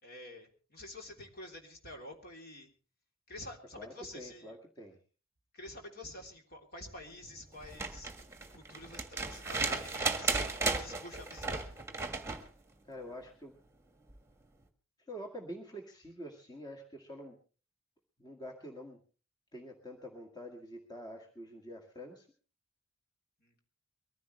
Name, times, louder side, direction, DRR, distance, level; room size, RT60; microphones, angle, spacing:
voice 1, 0.0-2.7 3.3-4.5 5.5-8.1 8.5-10.4 10.8-11.7 23.4-23.6, left 2 dB, 45° left, 2 dB, 3.3 m, -48 dB
voice 2, 3.8-5.0 12.8-13.5 15.0-17.4 18.2-19.0 19.5-22.3, equal, 20° left, 1 dB, 2.0 m, -46 dB
sound 1, 7.6-12.5 14.1-14.2, right 3 dB, 10° right, 1.6 m, -35 dB
23.0 x 15.0 x 3.3 m, 0.37 s
head